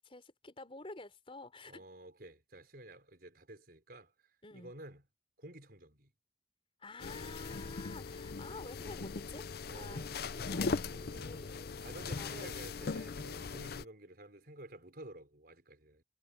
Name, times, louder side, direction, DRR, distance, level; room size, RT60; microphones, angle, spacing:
voice 1, 0.0-1.9 4.4-4.7 6.8-10.0 10.3-11.7 12.2-13.6, left 2 dB, 30° left, 4.1 m, -50 dB
voice 2, 1.7-4.1 4.5-5.0 5.4-6.1 9.7-11.4 11.8-16.0, right 1 dB, 55° right, 5.2 m, -52 dB
sound 1, 7.0-13.8, left 4 dB, 55° left, 0.6 m, -39 dB
head